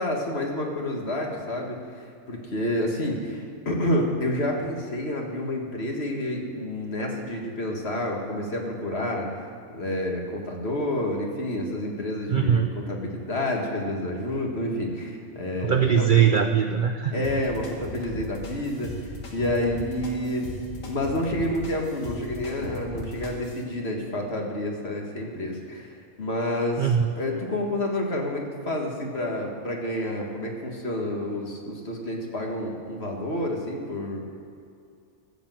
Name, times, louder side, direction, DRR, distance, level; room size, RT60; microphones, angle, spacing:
voice 1, 0.0-9.3 9.7-16.1 17.1-20.6 20.9-34.2, left 1 dB, 45° left, 0 dB, 1.9 m, -29 dB
voice 2, 12.3-12.7 15.6-17.3 26.8-27.1, right 8 dB, 60° right, 6 dB, 0.5 m, -21 dB
sound 1, 17.2-23.6, left 1 dB, 60° left, 2.0 m, -38 dB
13.0 x 8.1 x 7.6 m, 2.5 s
omnidirectional pair, 1.5 m